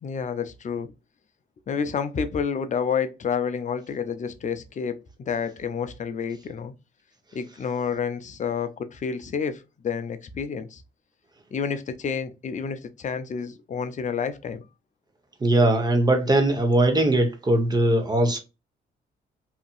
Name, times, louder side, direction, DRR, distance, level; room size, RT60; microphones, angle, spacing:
voice 1, 0.0-0.9 1.7-6.7 7.3-10.8 11.5-14.6, left 6 dB, 40° left, 0.5 m, -29 dB
voice 2, 15.4-18.4, right 1 dB, 20° right, 0.9 m, -20 dB
2.8 x 2.5 x 2.4 m
cardioid pair, 90°, 20 cm